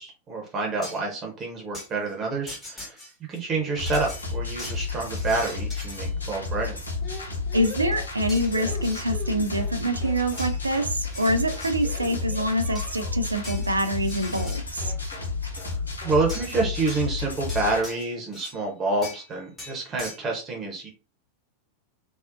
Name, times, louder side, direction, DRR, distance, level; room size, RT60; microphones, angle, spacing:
voice 1, 0.0-3.0 3.3-6.8 16.0-20.9, right 3 dB, 25° right, 0 dB, 0.8 m, -28 dB
sound 1, 0.8-1.2 1.7-1.9 2.5-3.4 3.9-6.1 8.3-9.1 10.4-10.6 11.0-12.0 12.5-13.0 13.4-14.7 16.3-16.6 16.9-18.6 19.0-19.3 19.6-20.2, left 1 dB, 15° left, 1.0 m, -41 dB
sound 2, 3.8-17.8, left 4 dB, 75° left, 0.5 m, -31 dB
sound 3, 7.0-9.8 10.0-10.5 10.8-11.0 11.2-13.3 14.4-14.6 14.8-15.3 15.6-15.8 16.0-16.5, left 4 dB, 35° left, 0.7 m, -42 dB
voice 2, 7.5-14.9, right 1 dB, 80° right, 8 dB, 0.4 m, -26 dB
2.6 x 2.0 x 2.5 m, 0.33 s
figure-of-eight pair, 90°, 0 cm